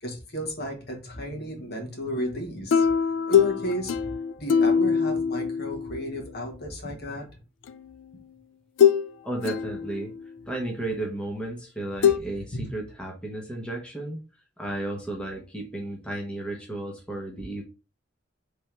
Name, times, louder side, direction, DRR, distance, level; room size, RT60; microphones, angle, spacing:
voice 1, 0.0-2.9 3.3-7.3 12.5-12.6, equal, 60° left, 1 dB, 1.4 m, -33 dB
sound 1, 2.7-6.3 7.7-7.8 8.8-9.1 9.4-10.3 12.0-12.2, left 7 dB, 90° left, 0.3 m, -23 dB
voice 2, 9.2-10.1 10.5-14.2 14.6-17.6, right 1 dB, 5° left, -1 dB, 1.0 m, -33 dB
3.5 x 3.4 x 4.4 m, 0.33 s
head